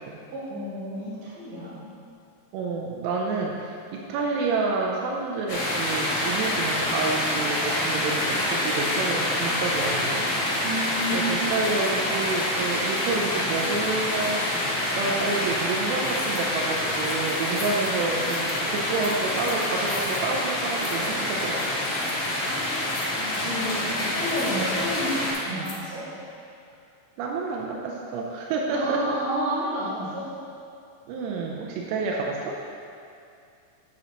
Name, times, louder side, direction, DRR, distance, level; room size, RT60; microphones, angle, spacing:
voice 1, 0.3-1.8 10.6-11.3 22.4-26.0 28.7-30.3 31.7-31.8, equal, 70° right, -9 dB, 1.6 m, -31 dB
voice 2, 2.5-10.7 11.1-21.9 27.2-29.2 31.1-32.6, right 3 dB, 85° right, -1 dB, 3.4 m, -29 dB
sound 1, 5.5-25.3, left 1 dB, 55° left, 3.5 m, -27 dB
sound 2, 16.1-16.5 16.8-25.8, left 5 dB, 75° left, 3.5 m, -44 dB
9.2 x 9.2 x 3.0 m, 2.4 s
omnidirectional pair, 5.9 m